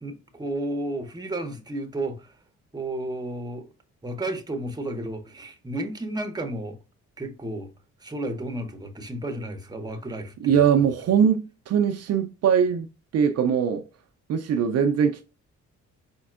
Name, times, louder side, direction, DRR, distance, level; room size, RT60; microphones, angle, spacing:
voice 1, 0.0-2.4 2.7-3.7 4.0-6.8 7.2-7.7 8.0-10.8, right 1 dB, 15° right, 0.8 m, -32 dB
voice 2, 10.4-12.9 13.1-13.8 14.3-15.2, right 7 dB, 55° right, 0.5 m, -21 dB
5.1 x 4.2 x 2.4 m
cardioid pair, 90°, 30 cm